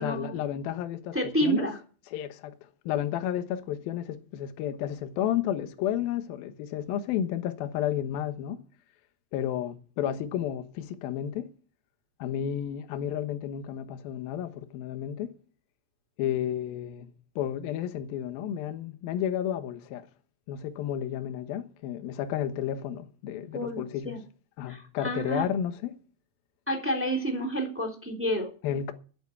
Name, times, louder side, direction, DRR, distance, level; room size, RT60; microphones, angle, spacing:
voice 1, 0.0-1.2 1.4-1.7 2.1-2.5 2.9-8.6 9.3-11.5 12.2-15.3 16.2-17.1 17.4-20.1 20.5-24.2 24.6-25.9 28.6-28.9, left 10 dB, 70° left, 2.5 m, -32 dB
voice 2, 1.1-1.7 23.5-24.2 24.7-25.5 26.7-28.5, right 1 dB, 5° right, 2.2 m, -29 dB
11.0 x 8.8 x 8.4 m
omnidirectional pair, 5.4 m